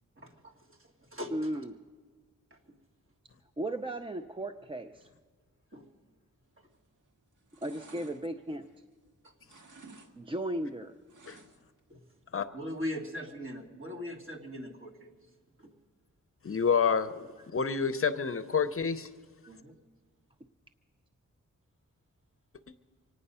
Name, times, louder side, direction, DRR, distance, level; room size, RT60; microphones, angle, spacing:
voice 1, 0.2-0.5 1.1-1.3 5.7-5.8 11.9-12.0 12.5-15.1 15.6-15.7 19.5-19.7, left 1 dB, 40° right, 0 dB, 2.2 m, -39 dB
voice 2, 1.3-1.7 3.6-5.1 7.6-8.7 10.1-10.9, right 1 dB, 15° right, 8 dB, 0.4 m, -35 dB
sound 1, 6.7-7.0 7.3-9.1 9.4-10.1 10.4-11.8 12.1-12.2, right 3 dB, 80° right, 1.7 m, -54 dB
voice 3, 16.4-19.1, left 6 dB, 45° left, 11 dB, 0.6 m, -28 dB
25.0 x 9.4 x 5.6 m, 1.5 s
wide cardioid pair, 125°, 31 cm